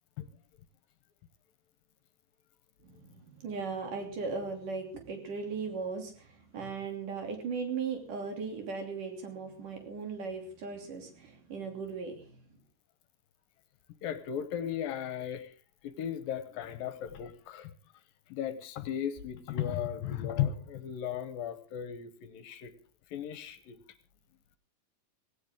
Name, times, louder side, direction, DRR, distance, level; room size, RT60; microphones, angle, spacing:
voice 1, 2.8-12.4, right 5 dB, 60° right, 3 dB, 4.4 m, -38 dB
voice 2, 14.0-15.5 15.8-17.7 18.3-22.7 23.1-23.8, left 10 dB, 75° left, 11 dB, 2.5 m, -36 dB
17.5 x 17.0 x 3.7 m, 0.38 s
omnidirectional pair, 4.4 m